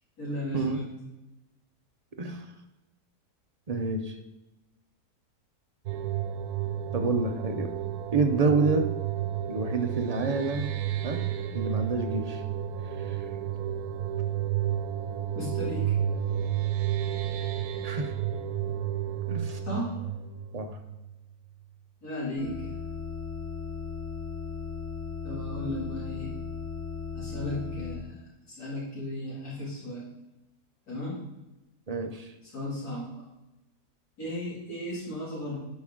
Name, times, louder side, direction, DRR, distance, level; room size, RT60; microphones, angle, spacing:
voice 1, 0.2-0.9 15.3-15.9 19.6-19.9 22.0-22.7 25.2-26.3 27.1-28.2 28.5-30.0 30.9-31.2 32.4-33.1 34.2-35.7, left 1 dB, 75° left, -7 dB, 3.1 m, -35 dB
voice 2, 3.7-4.2 6.9-7.7 8.1-8.9 9.5-10.7 11.0-11.2 11.5-12.4 13.0-13.2 17.8-18.1 19.3-19.6 20.5-20.8 31.9-32.3, right 3 dB, 45° right, 5 dB, 0.5 m, -28 dB
sound 1, 5.9-21.3, right 10 dB, 85° right, 1.2 m, -31 dB
sound 2, 22.4-28.0, left 5 dB, 60° left, 1.8 m, -36 dB
12.0 x 5.3 x 3.6 m, 0.99 s
omnidirectional pair, 1.6 m